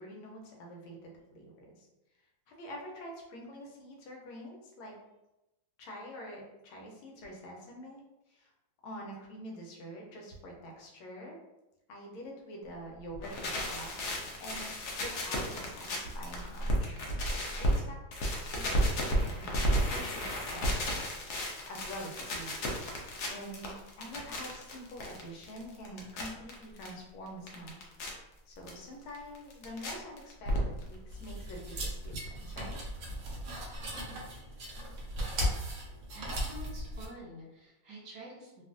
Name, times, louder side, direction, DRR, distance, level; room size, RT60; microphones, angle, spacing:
voice 1, 0.0-1.9 2.5-4.9 5.8-8.0 8.3-8.5 8.8-11.4 11.9-14.6 15.0-18.0 18.3-27.8 28.5-32.7, equal, 85° left, -1 dB, 1.5 m, -46 dB
sound 1, 13.1-17.8 18.1-26.9 27.3-28.1 28.7-28.8 29.1-29.9 30.2-31.0 31.2-31.3 31.5-31.6 31.8-31.9, equal, 70° left, 1.0 m, -33 dB
sound 2, 31.1-37.1, equal, 85° right, 0.7 m, -37 dB
voice 2, 36.1-38.6, right 1 dB, 65° right, -3 dB, 1.2 m, -48 dB
3.4 x 2.4 x 2.4 m, 0.95 s
omnidirectional pair, 2.2 m